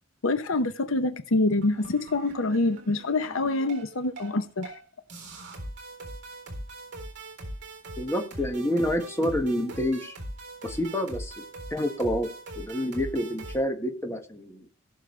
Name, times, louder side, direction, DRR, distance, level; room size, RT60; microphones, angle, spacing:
voice 1, 0.2-4.7, left 2 dB, 70° left, 0.8 m, -26 dB
sound 1, 1.6-4.3 4.6-4.8 5.1-13.6, right 1 dB, 55° right, 3.9 m, -41 dB
voice 2, 8.0-10.2 10.6-11.3 11.7-12.3 12.5-14.7, equal, 15° left, 1.7 m, -28 dB
18.0 x 6.5 x 3.3 m
head